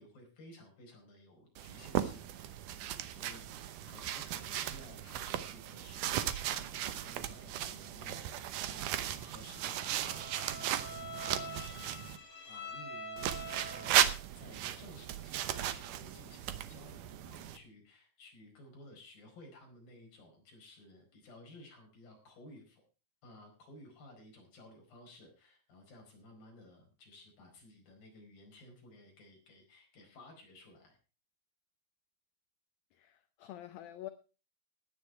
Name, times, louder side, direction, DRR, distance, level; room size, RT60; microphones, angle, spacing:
voice 1, 0.0-13.9 14.4-22.8 23.2-31.0, left 1 dB, 55° left, 6.3 m, -56 dB
sound 1, 1.6-12.2 13.2-17.6, right 11 dB, 80° right, 1.8 m, -36 dB
Bowed string instrument, 9.5-14.2, left 1 dB, 25° left, 4.2 m, -46 dB
voice 2, 32.9-34.1, left 13 dB, 75° left, 2.2 m, -47 dB
16.5 x 10.5 x 4.5 m
omnidirectional pair, 5.0 m